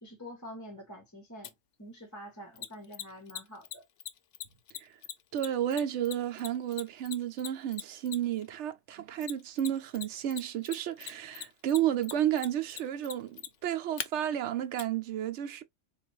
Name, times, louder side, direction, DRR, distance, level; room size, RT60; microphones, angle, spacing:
voice 1, 0.0-1.5 1.8-3.8, equal, 15° left, 0.7 m, -46 dB
Mechanisms, 1.4-1.5 2.6-8.4 9.2-10.0 10.3-14.1 14.8-14.9, left 10 dB, 75° left, 0.9 m, -39 dB
voice 2, 5.3-15.6, right 11 dB, 70° right, 0.9 m, -32 dB
4.1 x 2.4 x 3.0 m
omnidirectional pair, 1.3 m